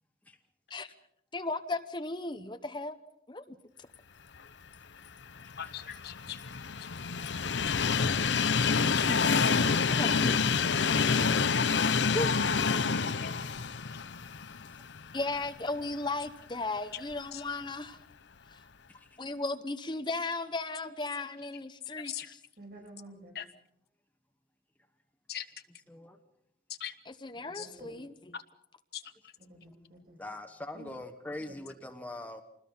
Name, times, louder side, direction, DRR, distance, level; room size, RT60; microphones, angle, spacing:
voice 1, 1.3-2.9 3.3-3.6 9.0-9.4 9.9-10.6 12.1-12.3 15.1-18.0 18.5-18.6 19.2-22.4 27.1-28.1, left 2 dB, 25° left, 9 dB, 0.9 m, -36 dB
Train, 5.4-15.5 15.9-16.0 17.1-17.2, left 5 dB, 85° left, 0.8 m, -28 dB
voice 2, 5.6-6.4 7.7-7.8 8.6-8.7 8.9-9.4 12.2-12.3 13.2-13.3 16.9-17.0 17.3-17.4 22.0-22.3 23.3-23.4 25.3-25.5 26.8-26.9 27.5-27.7 28.3-28.4 28.9-29.3, left 9 dB, 60° left, 9 dB, 1.3 m, -40 dB
voice 3, 22.6-23.4 27.4-28.0 29.4-30.3 30.7-30.9 31.4-31.5 31.8-31.9, right 1 dB, 55° right, 1 dB, 7.2 m, -52 dB
voice 4, 30.2-32.4, left 1 dB, 10° left, 5 dB, 1.2 m, -42 dB
27.5 x 20.5 x 5.6 m, 0.77 s
head